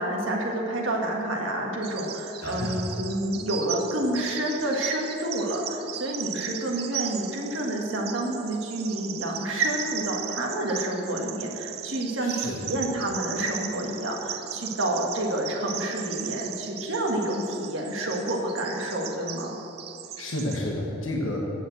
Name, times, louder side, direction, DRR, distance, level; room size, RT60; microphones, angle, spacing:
voice 1, 0.0-19.6, right 1 dB, 75° right, -1 dB, 1.5 m, -29 dB
Bird vocalization bird call bird song, 1.8-20.6, right 11 dB, 50° right, 0.5 m, -37 dB
voice 2, 2.4-2.8 12.2-12.7 20.2-21.4, left 1 dB, 80° left, -2 dB, 1.2 m, -31 dB
8.4 x 7.3 x 7.6 m, 2.8 s
head